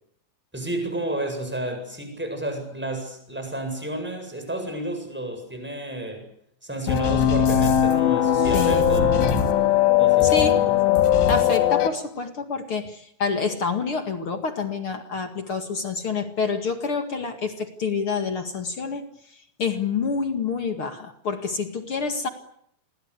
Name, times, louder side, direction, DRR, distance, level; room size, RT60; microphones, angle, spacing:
voice 1, 0.5-6.3 6.6-9.1 10.0-10.8, right 1 dB, ahead, 5 dB, 7.5 m, -31 dB
sound 1, 6.9-11.9, left 10 dB, 75° left, 4.3 m, -19 dB
voice 2, 8.3-8.8 10.2-10.6 11.3-19.1 19.6-22.3, left 5 dB, 45° left, 6 dB, 1.9 m, -27 dB
29.0 x 22.5 x 8.4 m, 0.72 s
omnidirectional pair, 5.1 m